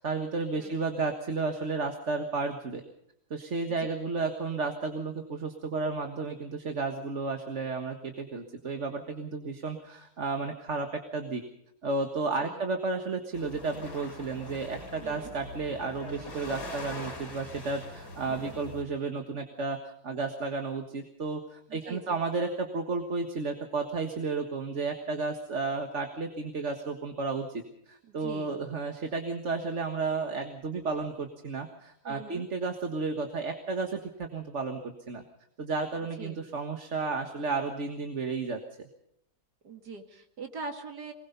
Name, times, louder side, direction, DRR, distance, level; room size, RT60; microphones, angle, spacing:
voice 1, 0.0-2.8 3.3-11.4 11.8-35.2 35.6-38.9, right 3 dB, 50° right, 5 dB, 1.8 m, -32 dB
sound 1, 13.3-18.8, left 2 dB, 85° left, 3.5 m, -43 dB
voice 2, 15.0-15.3 18.3-18.6 21.7-22.2 28.1-28.6 32.0-32.5 36.2-36.4 39.6-41.1, right 3 dB, 85° right, 4 dB, 2.8 m, -43 dB
23.0 x 20.5 x 5.5 m, 0.74 s
omnidirectional pair, 1.7 m